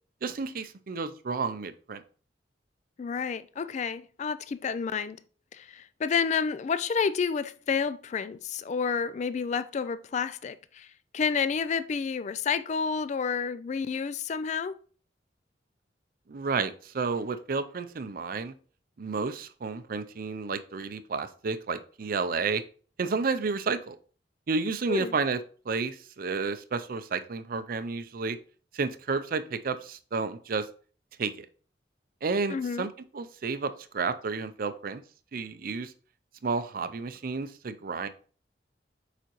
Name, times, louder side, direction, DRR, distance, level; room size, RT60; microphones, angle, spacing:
voice 1, 0.2-2.0 16.3-18.5 19.0-22.6 23.0-24.0 24.5-25.4 25.7-28.4 28.7-30.7 31.2-31.5 32.2-35.0 35.3-35.9 36.4-38.1, right 4 dB, 55° right, 0.5 m, -31 dB
voice 2, 3.0-5.2 5.5-10.9 11.1-14.8 24.9-25.1 32.5-32.9, left 6 dB, 40° left, 0.3 m, -30 dB
6.8 x 5.0 x 3.0 m
head